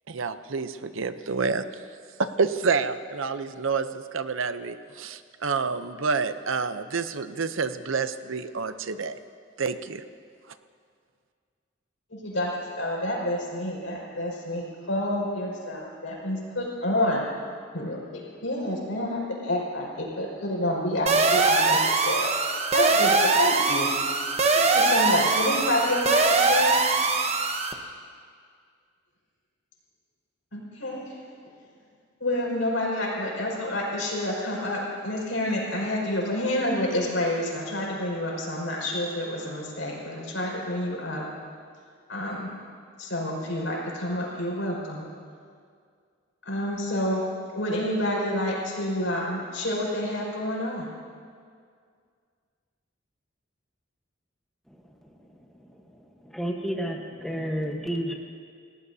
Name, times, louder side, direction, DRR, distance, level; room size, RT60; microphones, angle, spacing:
voice 1, 0.1-1.6 2.2-9.1 9.6-10.0, right 4 dB, 90° right, 11 dB, 0.7 m, -28 dB
voice 2, 12.1-12.5 12.8-17.2 17.7-22.3 22.7-23.9 24.5-26.8 30.5-31.1 32.2-41.2 42.1-42.5 43.0-45.1 46.5-47.2 47.5-50.9, left 1 dB, 80° left, -3 dB, 5.4 m, -28 dB
sound 1, 21.1-27.7, right 3 dB, 35° right, 1.0 m, -22 dB
voice 3, 56.3-58.1, equal, ahead, 0 dB, 1.2 m, -30 dB
28.0 x 18.0 x 2.8 m, 2.1 s
head